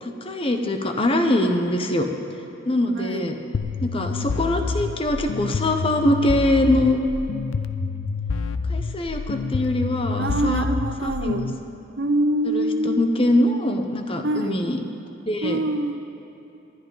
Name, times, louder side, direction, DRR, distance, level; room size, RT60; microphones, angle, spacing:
voice 1, 0.0-2.1 2.7-3.4 3.8-7.0 8.7-10.7 11.0-11.4 12.4-14.8 15.3-15.6, left 1 dB, 25° left, 5 dB, 0.8 m, -23 dB
voice 2, 2.9-3.3 4.0-4.2 10.2-11.4 12.0-13.1 14.2-14.6 15.4-16.1, right 1 dB, 55° right, 8 dB, 0.7 m, -25 dB
sound 1, 3.5-11.6, left 4 dB, 70° left, 0.5 m, -28 dB
20.5 x 11.5 x 4.0 m, 2.9 s
head